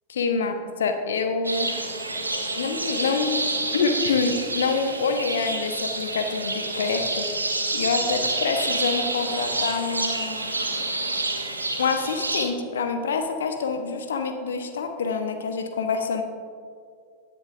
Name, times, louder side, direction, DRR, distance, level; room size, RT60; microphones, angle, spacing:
voice 1, 0.1-1.7 2.5-3.4 3.7-7.3 7.7-10.5 11.8-16.2, left 5 dB, 65° left, 7 dB, 0.9 m, -26 dB
sound 1, 1.4-12.5, right 2 dB, 80° right, 1.0 m, -28 dB
18.0 x 7.0 x 2.5 m, 2.2 s
figure-of-eight pair, 90°, 0 cm